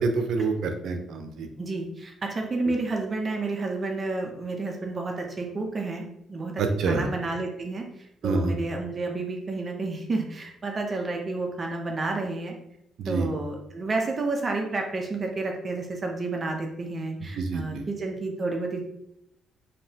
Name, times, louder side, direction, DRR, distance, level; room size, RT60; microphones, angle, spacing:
voice 1, 0.0-1.5 6.6-7.1 8.2-8.5 13.0-13.3 17.3-17.9, right 4 dB, 75° right, 5 dB, 0.6 m, -27 dB
voice 2, 1.6-12.6 13.1-18.8, right 3 dB, 35° right, 2 dB, 0.7 m, -30 dB
5.1 x 2.8 x 2.8 m, 0.80 s
cardioid pair, 90°, 0 cm